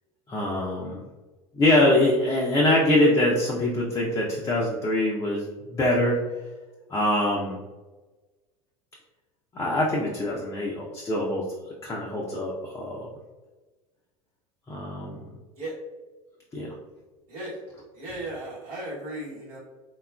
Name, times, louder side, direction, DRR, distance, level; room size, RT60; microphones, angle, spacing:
voice 1, 0.3-1.0 1.5-6.2 6.9-7.6 9.5-11.5 11.8-13.1 14.7-15.2 16.5-16.7, left 1 dB, 15° left, -3 dB, 0.5 m, -24 dB
voice 2, 17.9-19.6, right 1 dB, 75° right, -8 dB, 1.1 m, -36 dB
3.5 x 2.3 x 2.2 m, 1.2 s
figure-of-eight pair, 80°, 19 cm